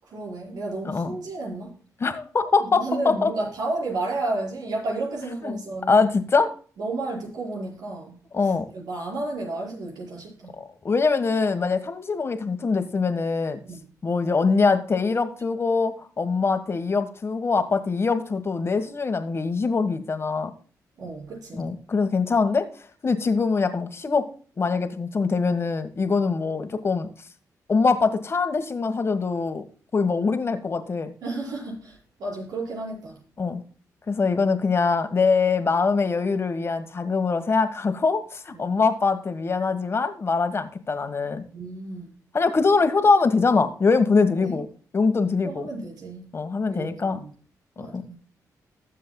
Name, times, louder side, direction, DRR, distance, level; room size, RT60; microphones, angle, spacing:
voice 1, 0.0-1.7 2.6-6.1 6.8-10.6 13.6-13.9 21.0-21.7 31.2-33.2 38.5-38.7 41.5-42.1 44.4-44.6 45.4-46.3 46.7-47.3 47.8-48.2, right 2 dB, 80° right, -2 dB, 5.6 m, -32 dB
voice 2, 0.8-1.2 2.0-3.3 5.4-5.6 5.9-6.5 8.3-8.7 10.5-13.6 14.0-20.5 21.5-22.7 23.0-24.3 24.6-27.1 27.7-29.6 29.9-31.1 33.4-33.6 34.1-41.4 42.3-44.7 44.9-45.7 46.3-47.2 47.8-48.0, left 4 dB, 40° left, 9 dB, 1.5 m, -23 dB
20.5 x 7.5 x 2.3 m, 0.42 s
cardioid pair, 90°, 7 cm